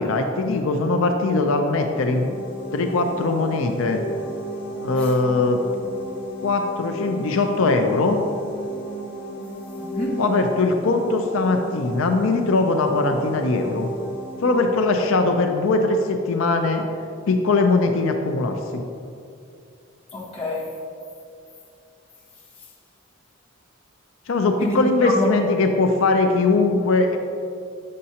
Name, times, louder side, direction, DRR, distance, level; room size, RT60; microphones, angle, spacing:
voice 1, 0.0-2.4 2.7-4.0 4.8-5.6 6.4-8.2 10.2-13.9 14.4-16.8 17.3-18.8 24.3-27.2, left 3 dB, 85° left, 0.5 m, -21 dB
sound 1, 1.4-16.1, right 1 dB, 50° left, 1.4 m, -34 dB
voice 2, 9.8-10.2 20.1-20.8 24.6-25.4, left 1 dB, 25° left, 1.1 m, -27 dB
7.4 x 6.5 x 2.8 m
head